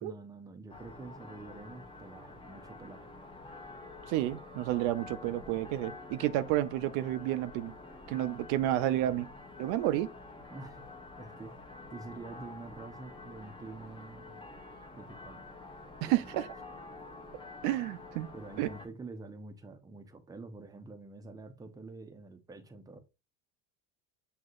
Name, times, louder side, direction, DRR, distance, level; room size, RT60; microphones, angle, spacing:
voice 1, 0.0-3.1 10.5-10.8 11.2-11.5 11.9-14.4 14.9-15.4 16.0-16.3 18.3-23.0, right 3 dB, 10° right, 0.6 m, -47 dB
sound 1, 0.7-18.9, left 3 dB, 15° left, 0.9 m, -48 dB
voice 2, 4.1-7.7 8.1-9.3 9.6-10.1 16.0-16.5 17.6-18.3 18.6-18.7, right 13 dB, 65° right, 0.4 m, -30 dB
6.2 x 2.8 x 2.5 m
supercardioid pair, 105°, 33 cm